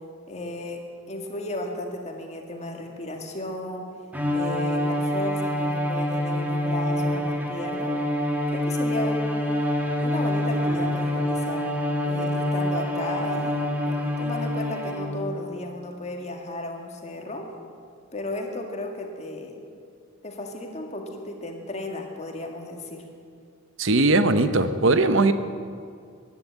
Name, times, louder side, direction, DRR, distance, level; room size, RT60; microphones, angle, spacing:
voice 1, 0.3-3.9 4.3-8.0 8.5-9.6 10.0-11.7 12.0-17.5 18.1-19.6 20.2-23.0, left 1 dB, 35° left, 2 dB, 1.9 m, -34 dB
Bowed string instrument, 4.1-15.3, left 1 dB, 10° right, 1.6 m, -26 dB
voice 2, 23.8-25.3, right 2 dB, 65° right, 11 dB, 0.9 m, -19 dB
15.5 x 11.0 x 8.2 m, 2.2 s
head